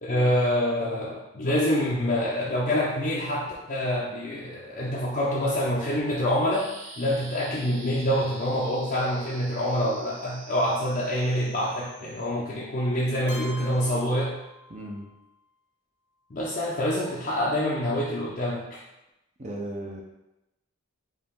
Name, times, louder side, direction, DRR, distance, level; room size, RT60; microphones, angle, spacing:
voice 1, 0.0-6.7 7.0-14.4 16.3-18.8, equal, 40° left, -6 dB, 0.6 m, -26 dB
sound 1, 6.5-12.3, right 2 dB, 55° right, 1.4 m, -46 dB
Keyboard (musical), 13.3-15.2, left 2 dB, 60° left, 0.9 m, -45 dB
voice 2, 14.7-15.1 19.4-20.0, right 1 dB, 30° right, -2 dB, 0.7 m, -36 dB
4.6 x 2.9 x 3.6 m, 0.93 s
head